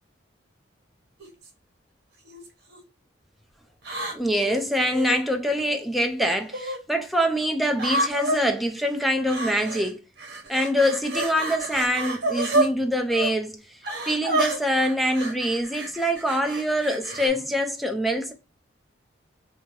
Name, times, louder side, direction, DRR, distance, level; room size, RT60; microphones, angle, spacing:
sound 1, 1.2-1.5 2.2-2.8 3.8-5.2 6.2-6.8 7.7-8.4 9.3-9.9 10.2-12.7 13.1-13.3 13.8-17.3, right 2 dB, 60° right, 1.0 m, -29 dB
voice 1, 4.1-10.0 10.5-13.8 14.1-18.3, equal, ahead, 0.4 m, -24 dB
2.7 x 2.6 x 2.9 m
head